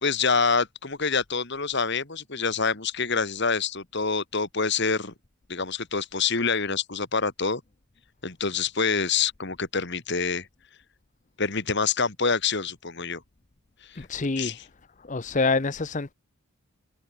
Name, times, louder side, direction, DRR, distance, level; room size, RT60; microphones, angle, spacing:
voice 1, 0.0-5.1 5.5-7.6 8.2-10.5 11.4-13.2 13.9-14.1 14.4-14.6, left 5 dB, 55° left, 2.2 m, -26 dB
voice 2, 14.0-14.6 15.1-16.1, left 3 dB, 35° left, 0.7 m, -26 dB
head